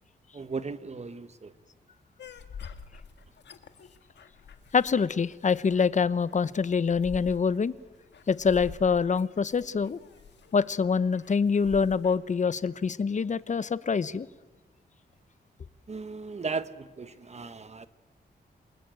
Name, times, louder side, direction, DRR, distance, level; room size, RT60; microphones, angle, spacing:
voice 1, 0.3-1.5 15.9-17.9, right 4 dB, 40° right, 1.1 m, -36 dB
sound 1, 2.2-12.2, left 6 dB, 90° left, 1.5 m, -47 dB
voice 2, 4.7-7.7 8.3-10.0 10.5-14.3, left 5 dB, 45° left, 0.9 m, -25 dB
28.0 x 19.5 x 9.0 m
wide cardioid pair, 100°, 18 cm